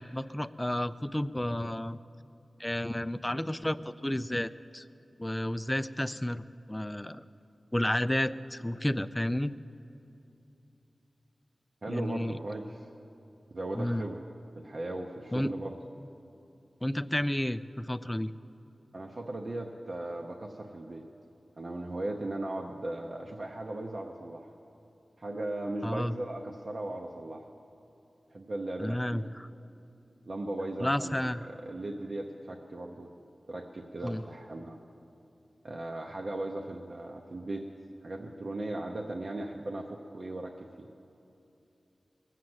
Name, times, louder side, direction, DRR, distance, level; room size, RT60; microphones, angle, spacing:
voice 1, 0.0-2.0 2.6-4.8 5.2-7.2 7.7-9.5 11.9-12.4 13.7-14.1 15.3-15.5 16.8-18.3 25.8-26.1 28.8-29.5 30.8-31.5 34.0-34.2, left 1 dB, 10° left, 13 dB, 0.4 m, -31 dB
voice 2, 11.8-12.9 13.5-14.2 14.6-15.8 18.9-21.1 21.6-24.5 25.2-27.5 28.3-29.2 30.3-33.1 33.5-34.8 35.6-37.7 38.0-40.9, right 2 dB, 45° right, 1 dB, 0.8 m, -37 dB
20.5 x 7.5 x 7.9 m, 2.8 s
wide cardioid pair, 100°, 0 cm